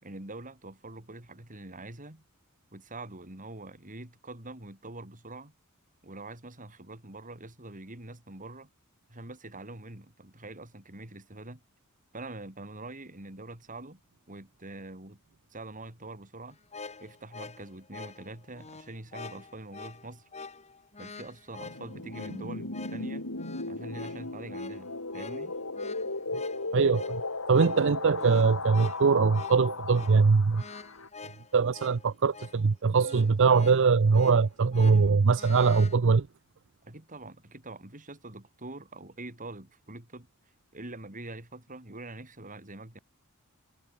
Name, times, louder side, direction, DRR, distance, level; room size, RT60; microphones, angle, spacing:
voice 1, 0.0-2.2 2.7-5.5 6.0-8.7 9.1-11.6 12.1-14.0 14.3-15.2 15.5-16.6 17.0-20.3 21.0-23.3 23.7-25.5 36.9-40.3 40.7-43.0, right 2 dB, 40° right, 4.2 m, -44 dB
sound 1, 16.5-36.0, left 4 dB, 30° left, 2.3 m, -47 dB
sound 2, 21.6-31.1, left 3 dB, 70° left, 3.6 m, -36 dB
voice 2, 26.7-27.2 27.5-30.6 31.5-36.3, right 5 dB, 60° right, 0.6 m, -22 dB
head